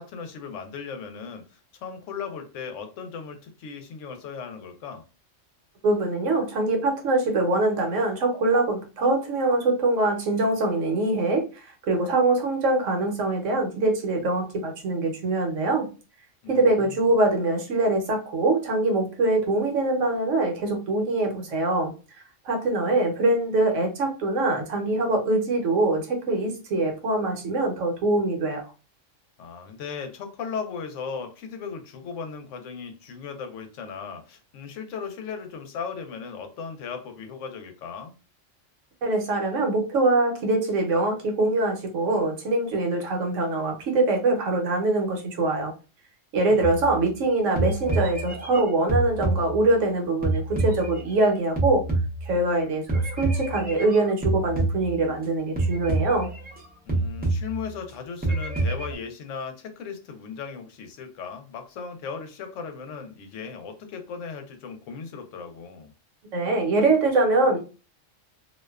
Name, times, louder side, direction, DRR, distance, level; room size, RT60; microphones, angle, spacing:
voice 1, 0.0-5.0 16.4-17.0 29.4-38.1 46.5-46.7 56.9-65.9, left 6 dB, 75° left, 6 dB, 0.9 m, -37 dB
voice 2, 5.8-15.9 16.5-28.6 39.0-45.7 46.3-51.8 52.2-56.3 66.3-67.6, right 2 dB, 75° right, 3 dB, 1.0 m, -23 dB
sound 1, 46.6-47.2 47.6-49.9 50.2-52.6 52.9-55.2 55.6-56.6 56.9-57.9 58.2-59.0, right 2 dB, 10° right, 0.4 m, -27 dB
2.5 x 2.2 x 2.2 m, 0.33 s
omnidirectional pair, 1.3 m